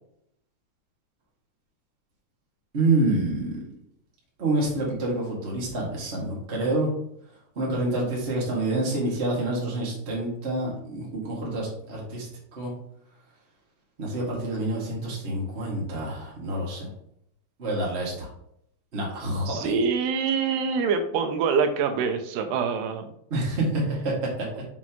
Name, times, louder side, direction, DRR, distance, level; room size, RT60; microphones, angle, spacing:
voice 1, 2.7-3.6 4.4-6.9 7.5-12.3 12.6-12.7 14.0-16.9 17.6-18.3 18.9-19.8 23.3-24.5, right 2 dB, 30° right, -4 dB, 1.1 m, -27 dB
voice 2, 19.5-23.1, right 5 dB, 85° right, 6 dB, 2.7 m, -25 dB
6.1 x 5.9 x 3.0 m, 0.73 s
omnidirectional pair, 4.8 m